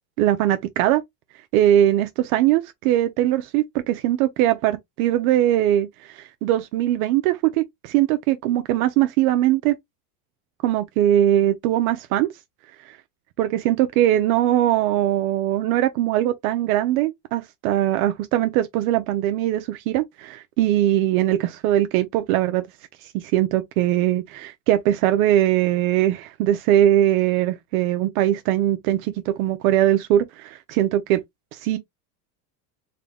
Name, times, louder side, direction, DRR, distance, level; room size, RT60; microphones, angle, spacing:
voice 1, 0.2-1.0 1.5-9.8 10.6-12.3 12.9-13.0 13.4-22.6 23.0-31.2 31.5-31.8, right 12 dB, 60° right, 0.7 m, -21 dB
3.9 x 2.2 x 3.4 m
supercardioid pair, 140°, 48 cm